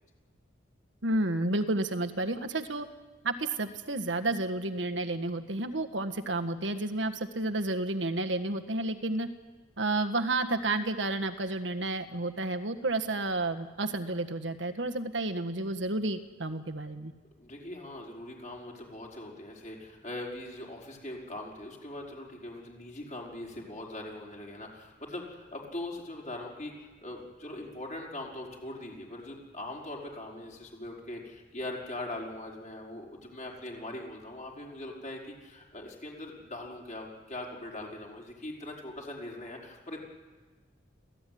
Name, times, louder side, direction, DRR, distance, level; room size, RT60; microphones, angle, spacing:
voice 1, 1.0-2.9 3.2-9.3 9.8-17.1, right 2 dB, 80° right, 8 dB, 1.6 m, -31 dB
voice 2, 17.4-40.0, left 1 dB, 40° left, -1 dB, 5.3 m, -41 dB
27.0 x 16.5 x 9.5 m, 1.3 s
head